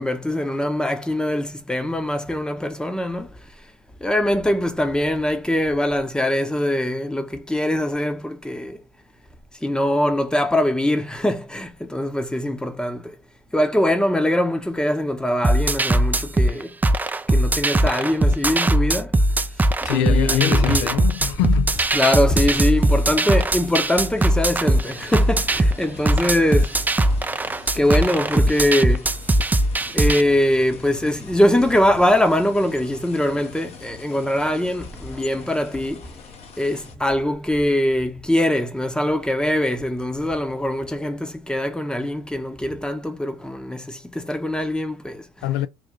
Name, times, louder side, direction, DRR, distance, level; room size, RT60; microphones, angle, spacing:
voice 1, 0.0-3.4 4.0-8.8 9.6-13.2 13.5-16.7 17.3-19.2 19.8-20.9 21.9-27.2 27.7-29.1 29.9-36.1 36.6-45.5, left 1 dB, 5° left, 0.8 m, -22 dB
sound 1, 15.4-30.2, right 1 dB, 15° right, 0.4 m, -20 dB
voice 2, 19.8-21.8 45.4-45.7, left 13 dB, 80° left, 0.4 m, -23 dB
sound 2, 21.7-36.9, left 5 dB, 50° left, 0.9 m, -43 dB
3.2 x 2.3 x 3.7 m
hypercardioid pair, 75°, 13 cm